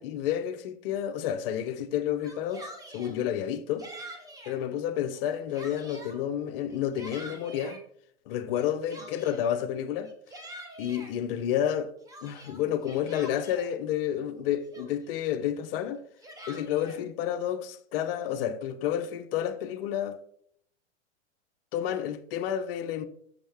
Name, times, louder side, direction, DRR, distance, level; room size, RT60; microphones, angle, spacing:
voice 1, 0.0-3.9 4.5-7.8 8.3-10.1 10.8-11.9 12.2-16.0 16.5-20.2 21.7-23.1, left 10 dB, 50° left, 0.7 m, -30 dB
Yell, 2.1-3.2 3.8-4.6 5.1-6.2 6.7-7.8 8.5-9.5 10.0-11.1 11.7-13.7 14.3-14.4 14.7-15.2 15.9-17.0, right 1 dB, 10° right, 1.0 m, -46 dB
6.3 x 5.1 x 3.4 m
hypercardioid pair, 125°, 37 cm